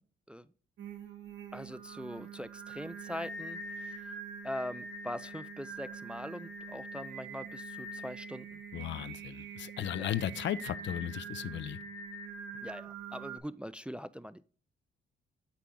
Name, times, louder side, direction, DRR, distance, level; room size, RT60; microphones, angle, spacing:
Singing, 0.8-13.4, right 3 dB, 65° right, 1.4 m, -44 dB
voice 1, 1.5-4.0 4.4-8.5 9.9-10.1 12.6-14.4, equal, 5° right, 0.3 m, -42 dB
voice 2, 8.7-11.8, left 11 dB, 65° left, 0.5 m, -36 dB
8.4 x 4.5 x 3.7 m
cardioid pair, 90°, 20 cm